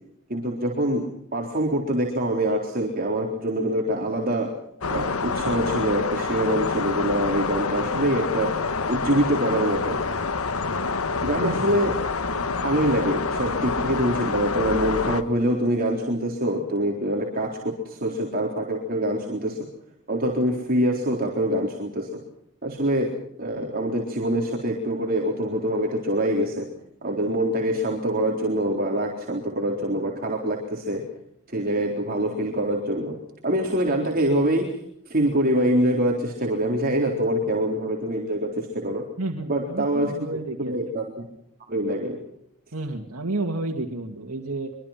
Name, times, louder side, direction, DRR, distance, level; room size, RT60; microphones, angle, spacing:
voice 1, 0.3-1.1 1.3-4.5 4.9-8.5 8.9-10.0 11.2-11.9 12.6-19.6 20.1-22.1 22.6-23.1 23.4-26.7 27.0-31.0 31.5-33.1 33.4-34.6 35.1-39.0 39.5-40.3 40.6-41.2 41.7-42.2, right 1 dB, 45° right, 0 dB, 4.0 m, -25 dB
sound 1, 4.8-15.2, left 4 dB, 85° left, 1.5 m, -27 dB
voice 2, 39.2-40.8 42.7-44.8, right 2 dB, 85° right, 2 dB, 2.4 m, -30 dB
25.0 x 24.0 x 5.9 m, 0.74 s
head